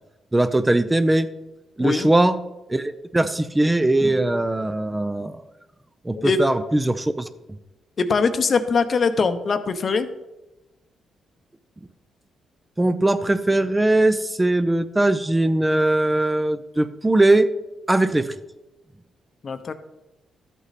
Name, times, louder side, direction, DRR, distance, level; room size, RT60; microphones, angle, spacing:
voice 1, 0.3-1.3 1.8-2.4 2.7-5.4 6.0-7.3 12.8-17.5 17.9-18.3, right 2 dB, 15° right, 10 dB, 0.5 m, -20 dB
voice 2, 6.1-6.7 8.0-10.1 19.4-19.7, left 4 dB, 45° left, 10 dB, 0.8 m, -22 dB
12.5 x 8.1 x 4.2 m, 1.0 s
cardioid pair, 95°, 0 cm